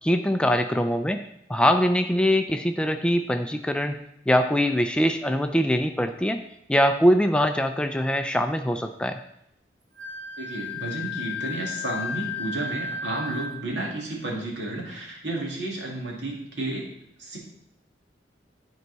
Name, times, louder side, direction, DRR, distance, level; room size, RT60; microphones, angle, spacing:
voice 1, 0.0-1.2 1.5-6.4 6.7-9.2, equal, 5° left, 7 dB, 0.3 m, -23 dB
Wind instrument woodwind instrument, 10.0-13.7, left 4 dB, 40° right, 1.1 m, -33 dB
voice 2, 10.4-16.9 17.2-17.4, right 2 dB, 80° right, -2 dB, 2.3 m, -32 dB
11.0 x 4.6 x 4.0 m, 0.78 s
head